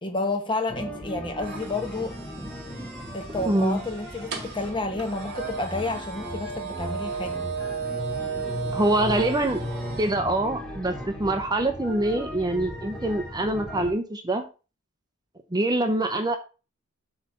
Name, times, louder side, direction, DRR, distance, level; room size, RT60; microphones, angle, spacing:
voice 1, 0.0-2.1 3.1-7.4, left 2 dB, 25° left, 1.2 m, -30 dB
sound 1, 0.7-13.9, equal, 5° left, 1.4 m, -37 dB
sound 2, 1.4-10.2, right 5 dB, 50° right, 1.9 m, -35 dB
voice 2, 3.5-3.8 8.7-9.6 10.0-14.4 15.5-16.4, right 1 dB, 20° right, 0.7 m, -24 dB
8.0 x 3.4 x 6.5 m
head